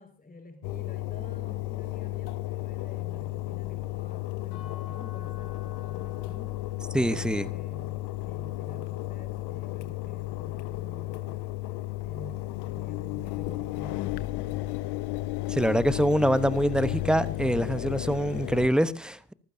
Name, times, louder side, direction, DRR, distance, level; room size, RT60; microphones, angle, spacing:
voice 1, 0.0-6.7 7.2-8.0 8.3-11.4 12.0-14.1, left 2 dB, 15° left, 5.3 m, -48 dB
Engine, 0.6-18.7, left 17 dB, 50° left, 1.3 m, -33 dB
sound 1, 4.5-10.3, left 8 dB, 70° left, 7.2 m, -53 dB
voice 2, 6.9-7.5 15.5-19.3, equal, ahead, 0.9 m, -25 dB
25.5 x 15.0 x 2.7 m
hypercardioid pair, 80°, 49 cm